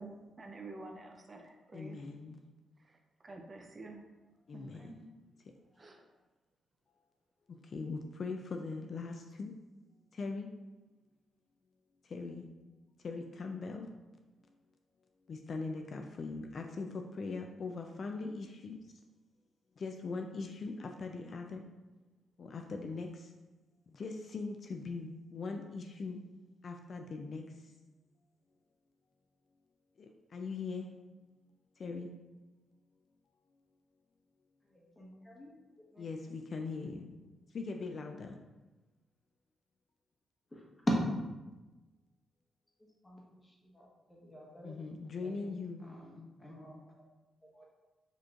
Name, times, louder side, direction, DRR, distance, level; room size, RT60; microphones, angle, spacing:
voice 1, 0.0-2.0 2.9-3.0 3.2-4.0 4.5-5.0 5.8-6.1, right 2 dB, 35° right, 2 dB, 0.5 m, -49 dB
voice 2, 1.7-2.4 4.5-5.0 7.5-9.5 10.1-10.5 12.0-12.5 13.0-13.9 15.3-18.8 19.8-21.7 22.4-23.3 23.9-26.2 26.6-27.5 30.0-30.9 31.8-32.1 36.0-37.1 37.5-38.4 44.6-45.8, left 4 dB, 50° left, 4 dB, 0.3 m, -41 dB
voice 3, 34.7-35.5 35.9-36.1 40.5-40.6 43.0-44.8 45.2-45.5 45.8-46.9 47.5-47.6, left 1 dB, 20° left, -3 dB, 1.0 m, -54 dB
4.9 x 3.0 x 2.4 m, 1.1 s
cardioid pair, 90°, 0 cm